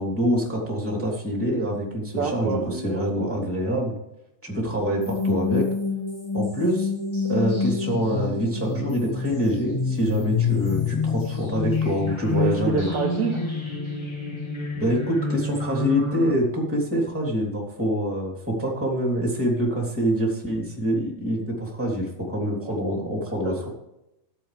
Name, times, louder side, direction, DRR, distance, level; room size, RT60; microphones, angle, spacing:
voice 1, 0.0-3.9 4.4-5.7 6.3-6.9 7.2-12.9 14.7-23.7, equal, 5° right, -1 dB, 2.8 m, -25 dB
voice 2, 2.1-3.4 12.4-13.5 22.7-22.8 23.3-23.7, right 6 dB, 65° right, 1 dB, 2.2 m, -29 dB
sound 1, 5.0-16.3, left 4 dB, 20° left, 0.6 m, -27 dB
14.0 x 9.8 x 3.5 m, 0.86 s
omnidirectional pair, 4.1 m